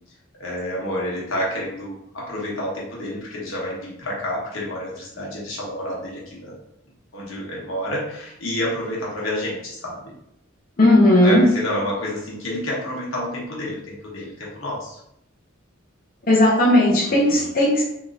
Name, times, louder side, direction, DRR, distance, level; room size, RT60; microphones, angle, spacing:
voice 1, 0.4-6.5 7.1-10.1 11.2-15.0 17.0-17.5, left 1 dB, 85° left, -5 dB, 1.1 m, -29 dB
voice 2, 10.8-11.4 16.3-17.8, left 1 dB, 45° left, -5 dB, 0.6 m, -16 dB
3.0 x 2.8 x 2.4 m, 0.79 s
head